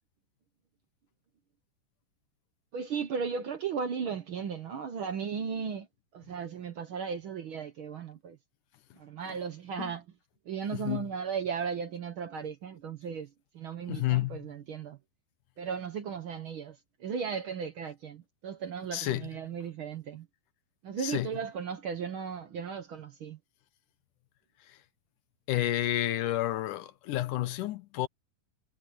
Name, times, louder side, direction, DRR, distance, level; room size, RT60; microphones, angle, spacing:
voice 1, 2.7-5.9 6.1-8.4 9.0-10.0 10.5-13.3 13.5-15.0 15.6-20.3 20.8-23.4, right 6 dB, 70° right, 1.2 m, -36 dB
voice 2, 10.7-11.1 13.8-14.4 18.9-19.3 21.0-21.3 24.7-24.8 25.5-28.1, left 14 dB, 75° left, 2.4 m, -30 dB
omnidirectional pair, 3.9 m